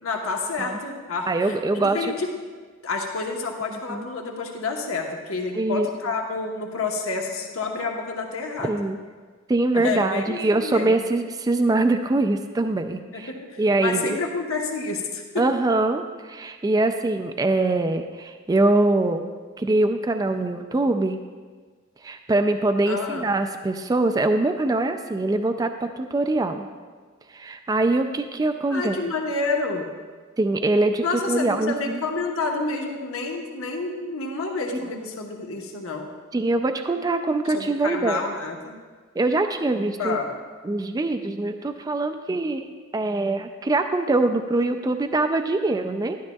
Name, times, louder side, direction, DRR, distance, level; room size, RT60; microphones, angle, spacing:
voice 1, 0.0-2.3 2.8-8.8 9.7-11.0 13.1-15.4 22.9-23.3 28.7-29.9 31.0-36.1 37.5-38.8 40.0-40.3, left 3 dB, 80° left, 1 dB, 1.1 m, -29 dB
voice 2, 1.3-2.0 3.9-4.1 5.5-5.9 8.6-9.0 9.5-13.3 13.6-14.2 15.4-19.3 19.6-21.2 22.0-26.7 27.3-29.0 30.4-32.0 34.8-34.9 36.3-38.2 39.2-40.2 40.6-42.6 42.9-46.2, right 2 dB, 20° right, 7 dB, 0.3 m, -23 dB
12.0 x 11.5 x 2.3 m, 1.5 s
head